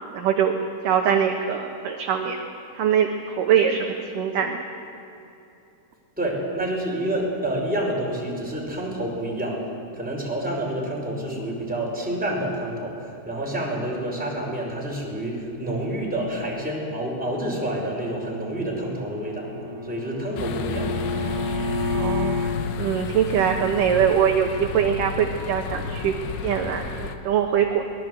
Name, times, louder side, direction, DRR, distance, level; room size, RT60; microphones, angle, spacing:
voice 1, 0.1-0.5 0.8-2.4 2.8-4.6 21.9-22.4 22.8-26.2 26.4-27.8, right 8 dB, 65° right, 3 dB, 2.2 m, -22 dB
voice 2, 6.2-9.7 9.9-19.5 19.8-21.0, right 1 dB, ahead, -3 dB, 4.7 m, -28 dB
Bowed string instrument, 18.8-22.6, left 2 dB, 45° right, 3.9 m, -29 dB
sound 1, 20.4-27.2, left 6 dB, 85° left, 3.4 m, -32 dB
23.0 x 19.5 x 8.1 m, 2.8 s
omnidirectional pair, 5.1 m